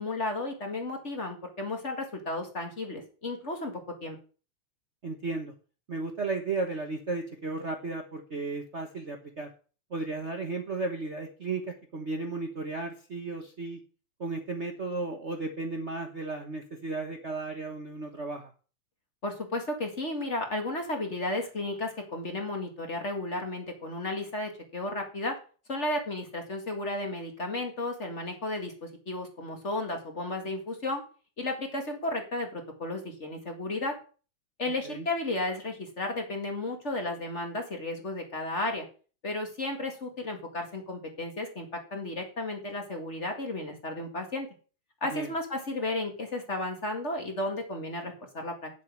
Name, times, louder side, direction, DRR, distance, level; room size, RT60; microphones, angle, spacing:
voice 1, 0.0-4.2 19.2-25.4 25.7-31.0 31.4-34.0 34.6-38.9 39.2-44.5 45.0-48.7, left 2 dB, 35° left, 3 dB, 2.0 m, -33 dB
voice 2, 5.0-5.5 5.9-9.5 9.9-13.8 14.2-18.5 34.8-35.1 45.1-45.3, right 3 dB, 40° right, 3 dB, 1.2 m, -34 dB
9.1 x 7.4 x 6.2 m, 0.38 s
omnidirectional pair, 2.4 m